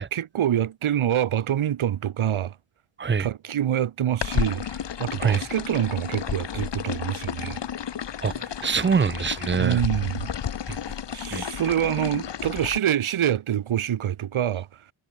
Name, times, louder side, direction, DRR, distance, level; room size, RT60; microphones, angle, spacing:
voice 1, 0.1-2.6 3.2-7.6 9.6-10.3 11.1-14.7, right 10 dB, 80° right, 1.5 m, -26 dB
sound 1, 4.2-12.8, left 8 dB, 60° left, 1.4 m, -32 dB
voice 2, 8.2-9.8 10.7-10.8 11.3-11.4, right 5 dB, 25° right, 0.6 m, -25 dB
cardioid pair, 65°, 48 cm